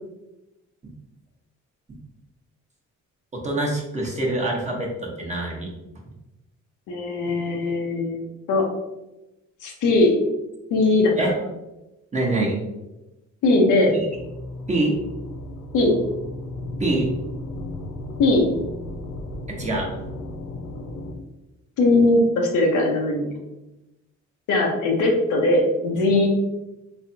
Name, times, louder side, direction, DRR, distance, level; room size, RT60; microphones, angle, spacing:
voice 1, 3.3-5.7 11.2-11.3 12.1-12.6 13.9-14.0 14.7-15.0 16.8-17.1 19.5-19.9, right 2 dB, 25° right, -2 dB, 1.0 m, -25 dB
voice 2, 6.9-8.7 9.6-10.1 10.7-11.1 13.4-14.0 15.7-15.9 18.2-18.4 21.8-23.4 24.5-26.3, left 2 dB, 85° left, 0 dB, 0.9 m, -20 dB
sound 1, 14.1-21.2, left 1 dB, 65° left, 0.5 m, -34 dB
3.4 x 3.1 x 2.8 m, 0.98 s
cardioid pair, 90°, 30 cm